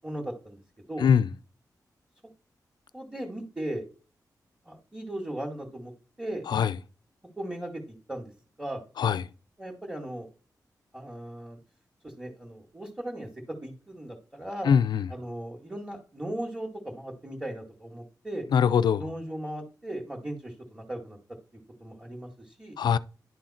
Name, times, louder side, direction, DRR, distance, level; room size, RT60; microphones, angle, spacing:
voice 1, 0.0-0.6 0.9-1.1 2.9-3.8 4.7-5.9 6.2-6.5 7.4-8.3 8.6-8.8 9.6-10.3 10.9-11.6 12.0-13.3 13.6-14.7 15.1-18.5 19.0-21.2 21.8-22.8, right 1 dB, 10° right, 2.0 m, -37 dB
voice 2, 14.7-15.1 18.5-19.0 22.8-23.0, left 7 dB, 80° left, 0.4 m, -22 dB
11.0 x 3.8 x 4.3 m
cardioid pair, 70°, 7 cm